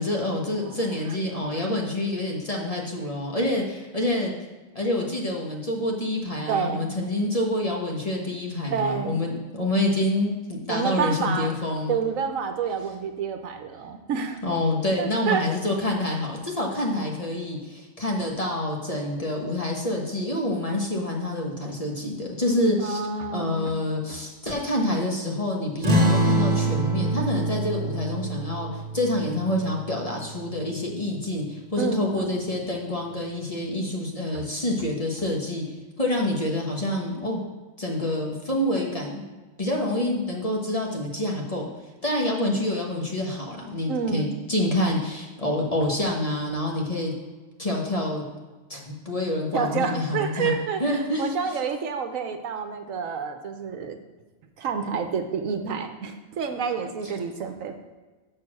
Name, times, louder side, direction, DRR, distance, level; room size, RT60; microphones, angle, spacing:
voice 1, 0.0-4.3 4.7-11.9 14.4-23.0 23.3-35.6 36.0-37.4 37.8-39.2 39.6-41.7 42.0-47.1 47.6-48.2 48.7-50.5 50.8-51.3 57.0-57.1, left 1 dB, 30° left, -1 dB, 1.2 m, -27 dB
voice 2, 6.5-6.9 8.7-9.2 10.7-11.5 11.9-14.4 15.0-15.4 22.8-23.7 24.1-24.2 31.8-32.3 34.3-34.4 43.9-44.3 49.5-54.0 54.6-57.7, right 6 dB, 75° right, 6 dB, 1.2 m, -28 dB
sound 1, 25.8-30.9, right 1 dB, 35° right, 1.5 m, -26 dB
6.7 x 6.6 x 6.2 m, 1.2 s
omnidirectional pair, 1.4 m